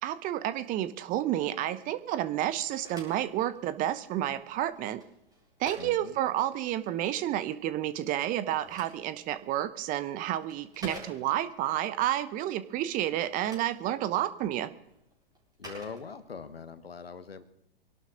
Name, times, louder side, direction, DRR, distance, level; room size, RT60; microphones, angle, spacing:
voice 1, 0.0-5.0 5.6-14.7, right 12 dB, 30° right, 14 dB, 0.8 m, -30 dB
Telephone, 2.5-7.0 8.2-11.6 13.1-16.7, right 1 dB, 15° right, 4.3 m, -50 dB
voice 2, 5.8-6.2 15.6-17.4, left 5 dB, 80° left, 12 dB, 1.4 m, -42 dB
23.5 x 11.5 x 3.9 m, 0.79 s
figure-of-eight pair, 110°, 29 cm